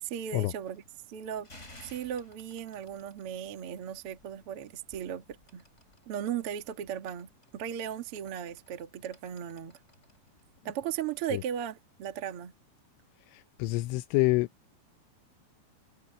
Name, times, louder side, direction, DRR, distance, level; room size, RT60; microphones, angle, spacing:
voice 1, 0.0-0.8 1.1-1.5 1.8-5.6 6.0-9.8 10.6-12.5, right 9 dB, 70° right, 1.3 m, -37 dB
sound 1, 0.6-10.6, left 1 dB, 15° left, 4.7 m, -58 dB
voice 2, 13.3-14.5, left 21 dB, 85° left, 3.1 m, -27 dB
omnidirectional pair, 5.5 m